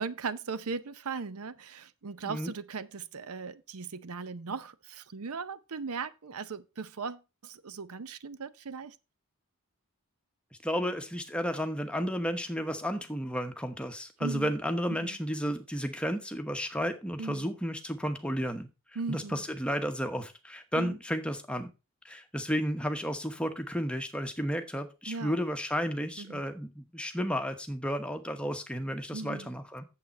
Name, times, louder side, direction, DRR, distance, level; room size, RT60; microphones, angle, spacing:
voice 1, 0.0-8.9 14.2-14.5 15.0-15.2 17.2-17.5 19.0-19.4 20.7-21.0 25.1-25.5 26.2-26.4 29.1-29.5, right 4 dB, 80° right, 0.7 m, -38 dB
voice 2, 10.6-18.7 19.1-21.7 22.0-29.9, equal, 5° left, 1.0 m, -32 dB
8.7 x 7.5 x 4.2 m
head